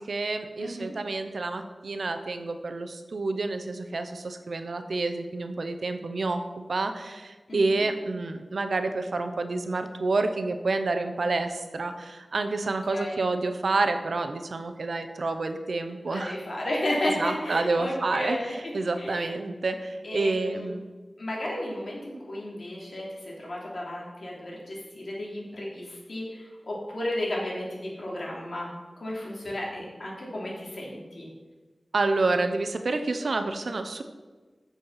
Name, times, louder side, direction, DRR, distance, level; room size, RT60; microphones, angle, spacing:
voice 1, 0.0-6.4 6.7-16.4 17.1-18.4 18.7-20.9 31.9-34.0, right 3 dB, 80° right, 8 dB, 0.8 m, -28 dB
voice 2, 0.6-0.9 7.5-7.8 12.6-13.2 16.1-19.3 20.0-20.7 21.2-31.3, left 1 dB, 65° left, -4 dB, 3.0 m, -33 dB
8.3 x 7.1 x 5.7 m, 1.3 s
wide cardioid pair, 75°, 0 cm